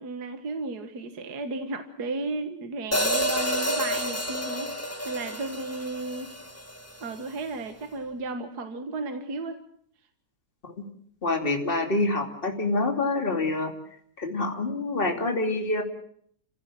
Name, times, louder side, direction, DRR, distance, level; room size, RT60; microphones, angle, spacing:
voice 1, 0.0-4.7 5.1-6.4 7.0-9.6, right 3 dB, 50° right, 7 dB, 2.0 m, -34 dB
Hi-hat, 2.9-7.1, equal, 10° left, 1.6 m, -29 dB
voice 2, 11.2-13.7 14.2-15.8, left 2 dB, 25° left, 3 dB, 3.0 m, -26 dB
29.5 x 16.5 x 7.6 m, 0.64 s
omnidirectional pair, 2.3 m